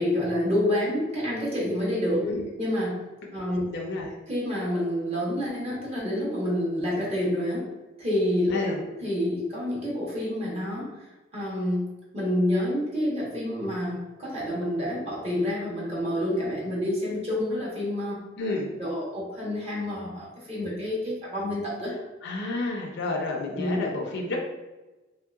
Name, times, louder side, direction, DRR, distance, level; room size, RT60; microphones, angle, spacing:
voice 1, 0.0-2.2 2.6-3.0 3.3-3.7 4.3-7.7 8.0-8.6 9.0-10.9 11.3-11.9 12.1-18.2 18.8-22.0 23.5-23.8, left 1 dB, 30° right, -5 dB, 1.1 m, -28 dB
voice 2, 3.5-4.1 8.5-8.8 18.4-18.7 22.2-24.4, left 2 dB, 60° left, -1 dB, 0.5 m, -30 dB
3.0 x 2.7 x 2.4 m, 1.1 s
head